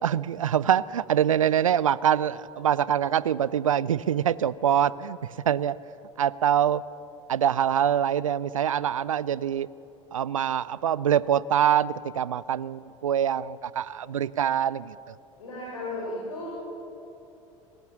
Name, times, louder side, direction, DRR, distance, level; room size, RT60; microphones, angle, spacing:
voice 1, 0.0-5.2 5.5-5.8 6.2-6.8 7.3-9.7 10.1-15.1, right 9 dB, 85° right, 20 dB, 0.4 m, -24 dB
voice 2, 15.4-16.5, left 2 dB, 80° left, -5 dB, 4.5 m, -34 dB
19.5 x 18.5 x 7.2 m, 2.9 s
figure-of-eight pair, 65°, 17 cm